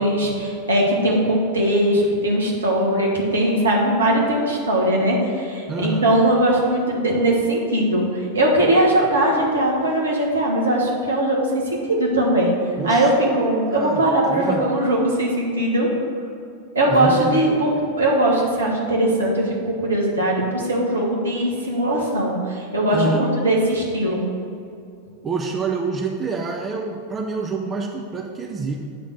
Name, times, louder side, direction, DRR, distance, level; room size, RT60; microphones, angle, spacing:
voice 1, 0.0-12.5 12.8-15.9 16.7-17.7 18.0-24.3, right 1 dB, 70° right, -2 dB, 1.4 m, -20 dB
voice 2, 5.7-6.1 12.8-13.1 13.7-14.0 14.3-14.7 16.9-17.4 22.9-23.3 25.2-28.8, right 4 dB, 20° right, 2 dB, 0.5 m, -27 dB
8.4 x 3.7 x 6.2 m, 2.5 s
figure-of-eight pair, 90°, 0 cm